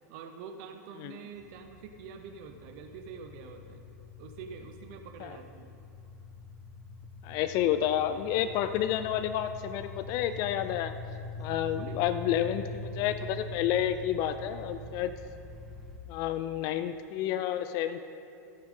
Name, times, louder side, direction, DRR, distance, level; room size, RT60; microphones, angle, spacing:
voice 1, 0.1-3.9 4.2-5.7 11.7-12.1, right 6 dB, 55° right, 6 dB, 0.8 m, -46 dB
sound 1, 1.3-16.0, left 2 dB, ahead, 1.2 m, -44 dB
voice 2, 7.2-10.9 11.4-15.1 16.1-18.0, left 11 dB, 45° left, 10 dB, 0.4 m, -30 dB
13.5 x 8.6 x 3.8 m, 2.5 s
hypercardioid pair, 120°, 9 cm